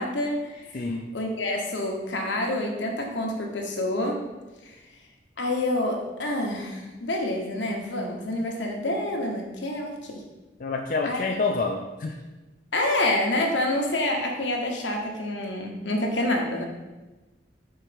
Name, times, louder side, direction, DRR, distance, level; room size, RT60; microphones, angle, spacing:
voice 1, 0.0-0.8 1.1-4.2 4.7-4.8 5.4-10.2 11.0-11.4 12.7-16.6, left 1 dB, 80° left, 1 dB, 1.0 m, -27 dB
voice 2, 0.7-1.1 10.6-12.2, left 3 dB, 45° left, 2 dB, 0.4 m, -28 dB
4.5 x 4.4 x 5.0 m, 1.1 s
head